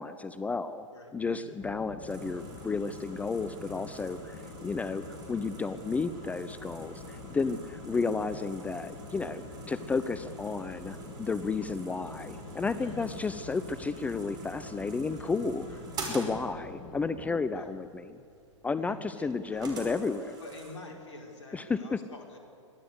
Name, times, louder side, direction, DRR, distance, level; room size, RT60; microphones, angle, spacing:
voice 1, 0.0-0.9 1.1-7.6 7.9-15.7 16.1-18.2 18.6-20.4 21.5-22.0, left 4 dB, 10° left, 13 dB, 0.5 m, -32 dB
voice 2, 0.9-1.5 7.3-7.6 12.8-13.1 15.7-15.8 16.1-16.3 17.5-17.7 18.7-19.9 20.4-22.4, left 2 dB, 65° left, 1 dB, 4.8 m, -48 dB
sound 1, 1.6-17.4, left 3 dB, 30° left, 2.8 m, -45 dB
sound 2, 2.1-20.7, right 3 dB, 25° right, 5.3 m, -47 dB
23.5 x 16.5 x 8.1 m, 2.6 s
figure-of-eight pair, 110°, 16 cm